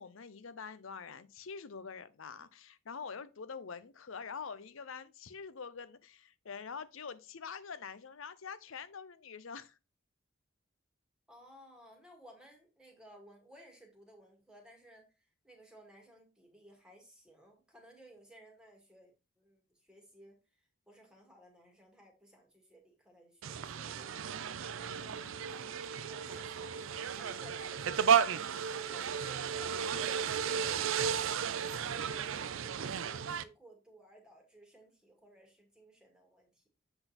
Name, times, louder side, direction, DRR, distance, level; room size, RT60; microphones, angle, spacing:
voice 1, 0.0-9.8 24.6-25.4, left 5 dB, 70° left, 0.7 m, -45 dB
voice 2, 11.3-24.4 25.1-36.7, right 1 dB, 5° right, 2.1 m, -58 dB
sound 1, 23.4-33.4, right 7 dB, 70° right, 0.5 m, -33 dB
7.9 x 3.9 x 4.2 m
head